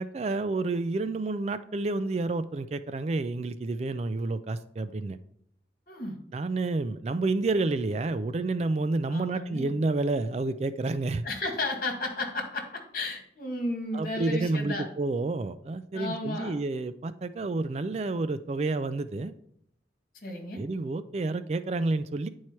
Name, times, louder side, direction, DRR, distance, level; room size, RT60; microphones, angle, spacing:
voice 1, 0.0-5.2 6.3-11.2 13.9-19.3 20.6-22.3, right 3 dB, 35° right, 12 dB, 0.3 m, -29 dB
voice 2, 9.1-9.7 11.2-14.9 15.9-16.5 20.2-20.6, left 2 dB, 50° left, 2 dB, 1.7 m, -33 dB
9.5 x 4.7 x 4.4 m, 0.69 s
head